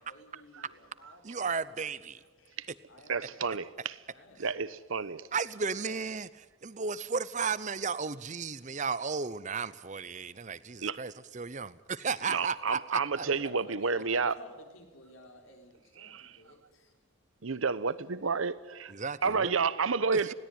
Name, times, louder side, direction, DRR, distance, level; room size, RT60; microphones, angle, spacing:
voice 1, 0.0-2.6 2.9-3.7 4.1-4.8 13.2-16.9, left 1 dB, 80° left, 4.2 m, -54 dB
voice 2, 1.2-2.2 5.3-13.2 18.9-19.5 20.1-20.3, right 5 dB, 35° right, 0.7 m, -34 dB
voice 3, 3.1-4.0 4.4-5.2 10.8-11.0 12.3-14.3 16.0-16.3 17.4-18.9 19.2-20.3, right 5 dB, 80° right, 0.9 m, -30 dB
20.5 x 17.5 x 9.5 m
head